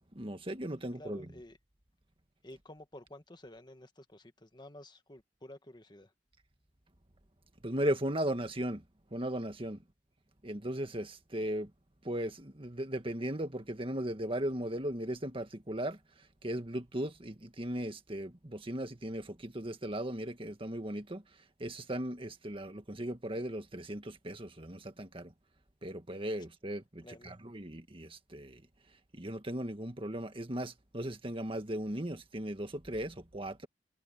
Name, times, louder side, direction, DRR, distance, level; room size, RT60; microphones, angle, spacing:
voice 1, 0.1-1.3 7.6-8.8 9.1-9.8 10.4-11.7 12.0-16.0 16.4-21.2 21.6-25.3 25.8-28.6 29.1-33.7, right 1 dB, 30° right, 1.7 m, -37 dB
voice 2, 1.0-1.6 2.4-6.1 27.0-27.3, left 1 dB, 25° left, 1.5 m, -52 dB
head